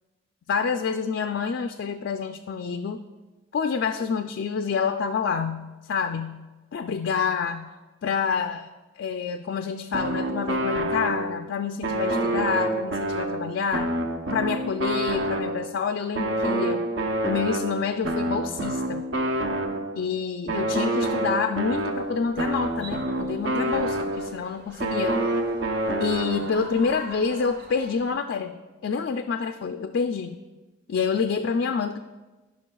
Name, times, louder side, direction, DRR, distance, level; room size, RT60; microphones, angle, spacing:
voice 1, 0.5-3.0 3.5-7.7 8.0-8.7 9.0-13.9 14.3-16.8 17.2-19.1 20.0-25.2 26.0-30.4 30.9-32.0, left 5 dB, 65° left, 7 dB, 0.3 m, -28 dB
sound 1, 9.9-11.5 11.8-15.8 16.2-20.0 20.5-24.4 24.8-26.6, right 1 dB, 70° right, 0.7 m, -27 dB
sound 2, 21.7-28.1, right 1 dB, 50° right, 0.9 m, -45 dB
15.5 x 5.6 x 2.3 m, 1.2 s
head